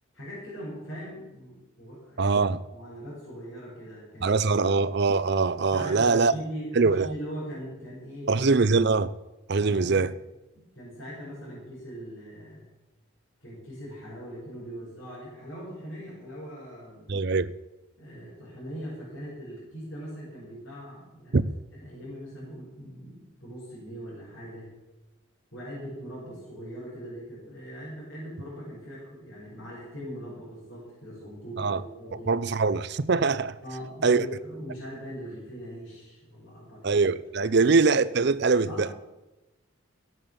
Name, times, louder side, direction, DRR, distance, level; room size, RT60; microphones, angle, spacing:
voice 1, 0.1-2.4 2.7-4.3 5.7-8.5 9.6-10.1 10.7-12.7 13.4-17.1 18.0-21.5 21.7-24.7 25.5-32.3 33.6-37.0 37.4-37.8 38.6-38.9, equal, 55° left, 6.2 m, -40 dB
voice 2, 2.2-2.6 4.2-6.3 6.8-7.1 8.3-9.1 9.5-10.1 17.1-17.5 21.3-21.4 31.6-31.8 32.1-33.6 34.0-34.2 36.8-38.9, right 4 dB, 55° right, 0.5 m, -23 dB
16.0 x 8.2 x 7.1 m
head